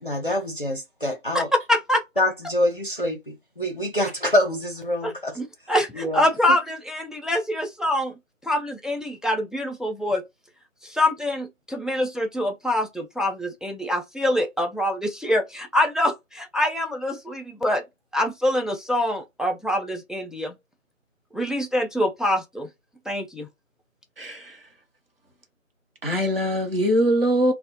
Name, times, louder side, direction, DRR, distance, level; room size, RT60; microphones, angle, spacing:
voice 1, 0.0-1.5 2.2-5.3 5.9-6.6, left 1 dB, 40° left, 0.6 m, -25 dB
voice 2, 1.7-2.0 5.0-8.1 8.4-10.2 10.8-17.8 18.1-20.5 21.3-22.7 23.1-23.5, left 1 dB, ahead, 0.3 m, -25 dB
voice 3, 24.2-24.6 26.0-27.5, equal, 45° right, 0.8 m, -22 dB
2.1 x 2.0 x 2.9 m
figure-of-eight pair, 165°, 40 cm